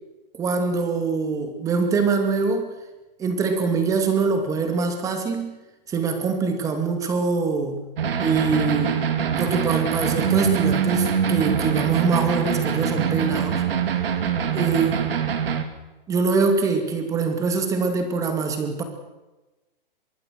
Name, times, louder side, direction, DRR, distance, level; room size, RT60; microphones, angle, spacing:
voice 1, 0.3-2.7 3.2-5.6 5.9-7.9 8.2-9.0 9.3-13.6 14.5-15.0 16.1-18.8, right 4 dB, 10° right, 6 dB, 2.4 m, -24 dB
sound 1, 8.0-15.6, right 7 dB, 75° right, 3.0 m, -24 dB
24.0 x 23.0 x 6.4 m, 1.1 s
hypercardioid pair, 170°, 29 cm